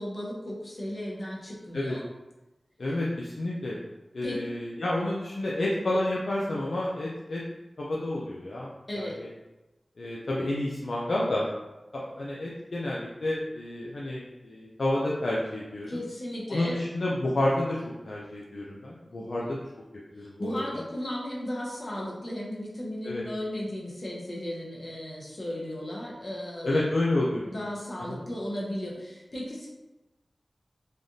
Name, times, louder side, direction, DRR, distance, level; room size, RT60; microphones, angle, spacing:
voice 1, 0.0-2.1 4.2-4.4 8.9-9.2 15.9-16.8 19.2-19.3 20.2-26.8 27.4-29.7, left 1 dB, 60° left, -5 dB, 1.0 m, -35 dB
voice 2, 2.8-3.8 4.1-7.4 7.8-9.3 10.0-11.5 11.9-16.0 16.5-19.6 20.1-20.8 23.0-23.2 26.6-27.5 28.1-28.2, left 1 dB, 80° left, -5 dB, 0.4 m, -30 dB
3.4 x 2.3 x 2.6 m, 1.0 s
cardioid pair, 45°, 0 cm